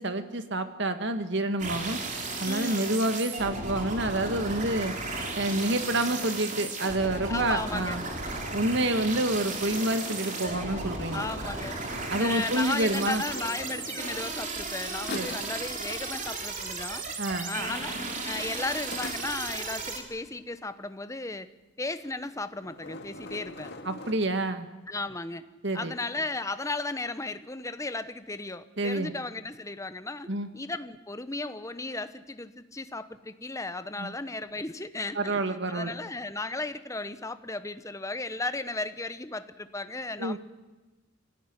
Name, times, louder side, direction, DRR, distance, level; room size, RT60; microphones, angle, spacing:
voice 1, 0.0-2.0 2.4-4.9 5.3-8.0 8.5-11.3 12.1-13.2 15.1-15.3 17.2-17.5 23.9-24.7 25.6-25.9 28.8-29.1 30.3-30.5 34.0-34.1 35.2-35.9 40.2-40.4, right 1 dB, 55° right, 8 dB, 1.9 m, -28 dB
sound 1, 1.6-20.0, right 3 dB, 35° right, 3.7 m, -35 dB
voice 2, 2.4-3.0 7.3-8.0 11.1-11.8 12.2-17.0 17.4-18.0 18.2-21.5 21.8-23.7 24.9-25.4 25.7-40.4, left 2 dB, 15° left, 11 dB, 1.0 m, -35 dB
sound 2, 9.0-11.7 12.6-14.7 15.0-15.6 18.8-19.7 22.0-22.3 22.6-24.1, left 2 dB, 50° left, 2.2 m, -43 dB
24.5 x 17.5 x 9.8 m, 1.1 s
head